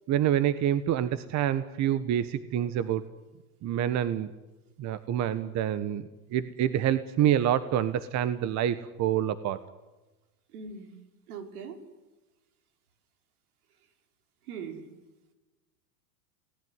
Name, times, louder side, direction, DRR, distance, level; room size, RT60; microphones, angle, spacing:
voice 1, 0.1-3.0 3.6-4.3 4.8-9.6, right 10 dB, 40° right, 13 dB, 1.3 m, -27 dB
voice 2, 10.5-10.9 11.3-11.8 14.5-14.9, right 6 dB, 75° right, 6 dB, 5.1 m, -40 dB
29.0 x 19.0 x 9.7 m, 1.1 s
supercardioid pair, 120°, 45 cm